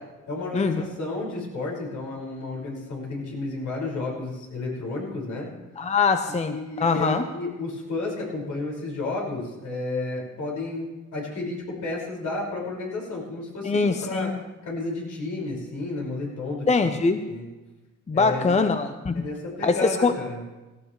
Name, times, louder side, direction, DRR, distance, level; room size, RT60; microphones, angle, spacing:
voice 1, 0.3-5.5 6.3-14.3 14.6-16.7 17.3-17.4 18.1-18.5 19.1-20.4, left 2 dB, 75° left, -3 dB, 5.7 m, -32 dB
voice 2, 5.8-7.2 13.6-14.4 16.7-17.2 18.1-19.2 19.6-20.1, left 4 dB, 25° left, 8 dB, 0.7 m, -23 dB
17.5 x 15.5 x 3.3 m, 1.1 s
cardioid pair, 90°, 30 cm